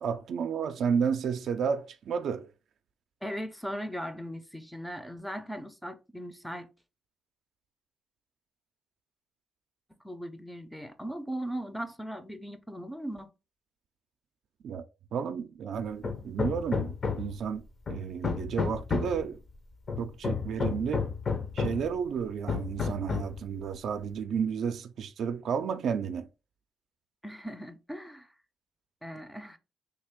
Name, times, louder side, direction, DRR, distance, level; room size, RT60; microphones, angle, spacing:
voice 1, 0.0-2.5 14.6-14.8 15.1-17.6 17.9-19.4 20.0-21.1 21.5-26.3, right 6 dB, 65° right, 0.4 m, -32 dB
voice 2, 3.2-6.7 9.9-13.3 20.0-20.1 27.2-28.3 29.0-29.6, equal, 5° left, 0.5 m, -38 dB
Hammer, 16.0-17.4 17.9-19.3 19.9-21.9 22.5-23.4, left 5 dB, 45° left, 0.7 m, -31 dB
3.3 x 2.4 x 3.5 m
cardioid pair, 90°, 0 cm